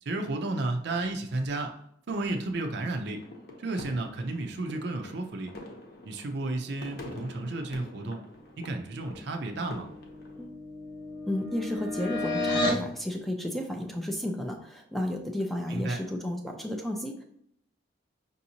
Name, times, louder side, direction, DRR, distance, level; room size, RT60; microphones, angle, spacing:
voice 1, 0.0-1.8 2.1-3.3 3.6-5.5 6.0-8.2 8.6-9.9 15.7-16.0, right 2 dB, 55° right, 4 dB, 0.5 m, -32 dB
sound 1, 3.0-10.5, left 2 dB, 55° left, 0.8 m, -47 dB
sound 2, 9.7-12.9, left 2 dB, 70° left, 1.1 m, -32 dB
voice 2, 11.3-17.2, left 1 dB, ahead, 2 dB, 0.4 m, -33 dB
5.3 x 2.7 x 2.8 m, 0.70 s
head